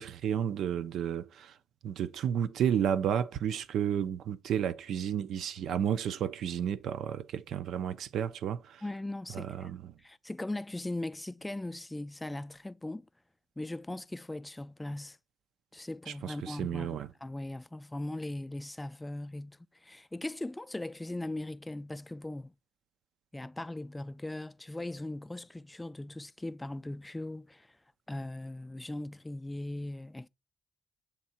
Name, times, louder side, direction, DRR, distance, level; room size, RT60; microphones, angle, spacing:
voice 1, 0.0-1.5 1.8-8.8 9.3-9.8 16.1-17.1, right 9 dB, 75° right, 0.4 m, -32 dB
voice 2, 8.8-9.7 10.0-13.1 13.6-15.2 15.7-22.5 23.3-27.8 28.1-30.3, left 1 dB, 10° left, 0.3 m, -39 dB
7.2 x 3.6 x 4.2 m
cardioid pair, 110°, 0 cm